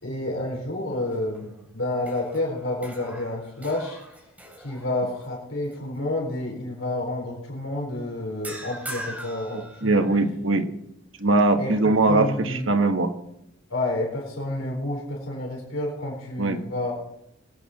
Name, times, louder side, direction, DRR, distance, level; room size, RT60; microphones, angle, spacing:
voice 1, 0.0-4.0 4.6-10.1 11.6-11.8 12.1-12.7 13.7-17.0, left 1 dB, 85° left, -1 dB, 4.0 m, -29 dB
sound 1, 0.9-1.6 2.0-5.3 5.7-6.0 8.4-10.4, right 1 dB, 5° right, 3.8 m, -41 dB
voice 2, 9.5-10.7 11.2-13.1 16.4-16.6, right 2 dB, 75° right, 6 dB, 1.4 m, -21 dB
22.5 x 8.7 x 4.2 m, 0.80 s
head